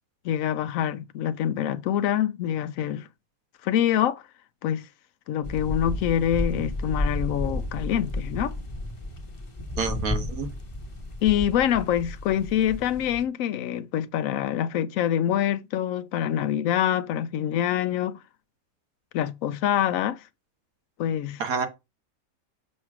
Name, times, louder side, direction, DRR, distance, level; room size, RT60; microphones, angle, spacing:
voice 1, 0.2-3.1 3.6-4.2 4.6-4.9 5.3-8.6 11.2-18.2 19.1-20.2 21.0-21.4, left 10 dB, 75° left, 1.0 m, -25 dB
sound 1, 5.4-13.2, left 1 dB, 25° left, 1.1 m, -32 dB
voice 2, 9.8-10.5 21.4-21.7, right 5 dB, 80° right, 1.6 m, -28 dB
6.5 x 3.1 x 5.9 m
omnidirectional pair, 1.5 m